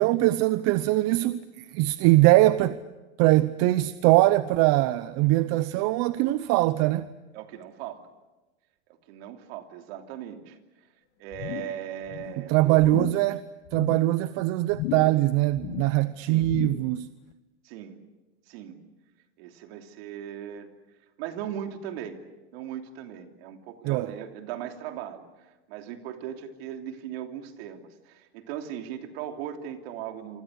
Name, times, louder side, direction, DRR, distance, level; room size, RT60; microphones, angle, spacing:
voice 1, 0.0-2.8 3.2-7.1 12.4-13.4 13.7-17.1 23.8-24.1, right 17 dB, 45° right, 0.8 m, -22 dB
voice 2, 7.3-8.0 9.1-10.6 11.2-12.9 16.2-16.5 17.6-18.0 18.5-18.8 19.4-20.7 21.2-22.2 22.5-25.2 25.7-30.4, right 10 dB, 65° right, 3.1 m, -38 dB
Wobble Board, 11.3-11.8 12.1-12.4 12.8-13.3 13.7-14.1 14.7-15.2 15.5-16.0 16.4-17.0 17.3-17.4, left 15 dB, 55° left, 1.1 m, -35 dB
27.0 x 25.5 x 6.5 m
supercardioid pair, 135°, 34 cm